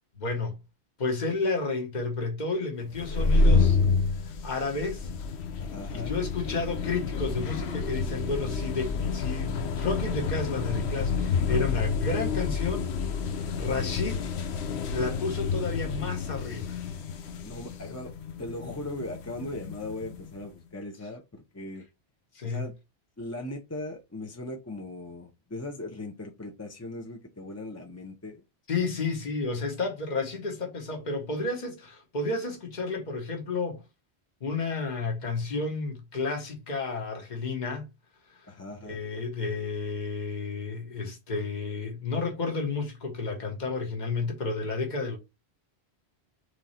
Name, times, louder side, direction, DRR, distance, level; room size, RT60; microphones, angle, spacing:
voice 1, 0.1-0.6 1.0-3.8 4.4-5.1 5.9-12.9 13.3-14.2 14.9-16.8 22.3-22.6 28.7-33.8 34.4-37.8 38.8-45.2, left 3 dB, 45° left, 1.3 m, -31 dB
sound 1, 2.9-20.3, left 4 dB, 80° left, 1.0 m, -29 dB
voice 2, 5.6-6.1 17.4-18.1 18.4-21.9 22.4-22.7 23.2-28.4 38.5-39.0, left 1 dB, 20° left, 0.5 m, -39 dB
3.7 x 3.2 x 4.2 m
omnidirectional pair, 1.1 m